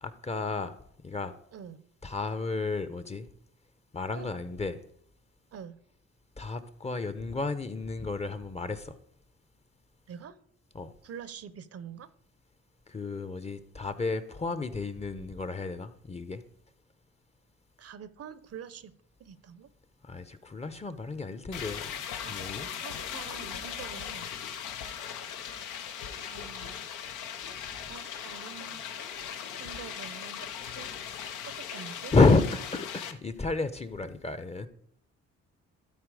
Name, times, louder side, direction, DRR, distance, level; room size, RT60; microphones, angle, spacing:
voice 1, 0.0-0.8 1.0-1.4 2.0-3.3 3.9-4.8 6.4-9.0 10.7-10.9 12.9-16.4 20.0-21.9 22.3-22.7 32.1-34.7, left 3 dB, 20° left, 13 dB, 0.7 m, -30 dB
voice 2, 1.5-1.8 4.1-4.3 5.5-5.8 10.1-10.4 11.0-12.1 17.8-18.9 19.2-19.7 22.2-22.3 22.6-24.3 26.2-26.9 27.9-28.9 29.6-30.9 31.4-32.1, right 8 dB, 50° right, 16 dB, 0.7 m, -45 dB
sound 1, 21.5-33.1, left 8 dB, 85° left, 0.9 m, -39 dB
12.5 x 4.5 x 4.8 m, 0.70 s
cardioid pair, 90°, 30 cm